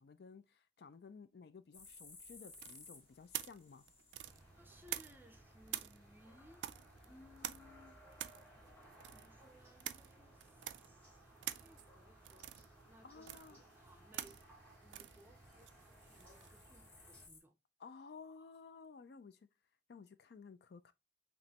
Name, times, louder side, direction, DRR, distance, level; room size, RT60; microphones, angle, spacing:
voice 1, 0.0-3.9 13.0-13.6 17.8-19.5 19.9-20.9, left 5 dB, 60° left, 0.4 m, -55 dB
sound 1, 1.7-17.4, left 3 dB, 30° left, 1.0 m, -64 dB
sound 2, 2.5-5.4 5.7-16.6, right 13 dB, 80° right, 0.3 m, -48 dB
sound 3, 4.2-17.3, right 1 dB, 10° left, 1.7 m, -61 dB
voice 2, 4.5-6.7 7.0-8.0 8.9-14.4 14.8-17.6, left 1 dB, 10° right, 0.6 m, -63 dB
5.2 x 3.0 x 2.8 m
head